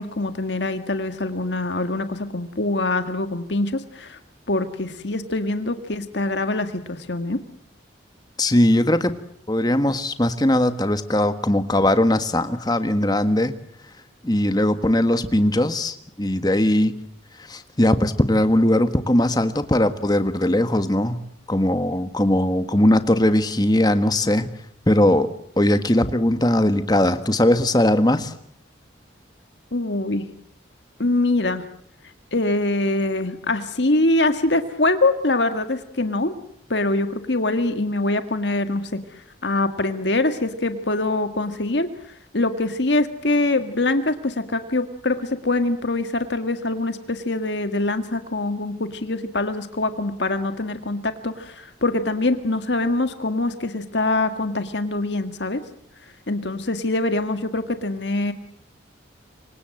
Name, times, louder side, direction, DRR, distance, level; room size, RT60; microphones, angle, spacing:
voice 1, 0.0-4.2 4.5-7.4 29.7-30.3 31.0-31.6 32.3-36.4 36.7-55.6 56.3-58.3, left 2 dB, 65° left, 8 dB, 1.7 m, -24 dB
voice 2, 8.4-9.2 9.5-13.5 14.2-16.9 17.5-21.2 21.5-24.5 24.9-25.3 25.6-28.3, left 1 dB, 20° left, 10 dB, 1.6 m, -19 dB
27.5 x 25.0 x 7.8 m, 0.66 s
head